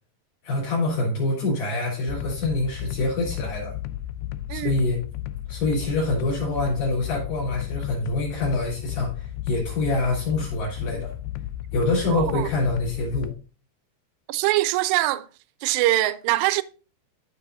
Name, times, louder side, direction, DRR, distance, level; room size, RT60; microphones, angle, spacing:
voice 1, 0.4-3.7 4.5-5.0 5.5-11.1 11.7-13.3, left 2 dB, 55° left, 5.5 m, -26 dB
sound 1, 2.1-13.3, left 13 dB, 85° left, 2.5 m, -33 dB
voice 2, 12.1-12.5 14.3-15.3 15.6-16.6, right 16 dB, 85° right, 2.7 m, -23 dB
16.0 x 5.6 x 2.6 m
omnidirectional pair, 5.0 m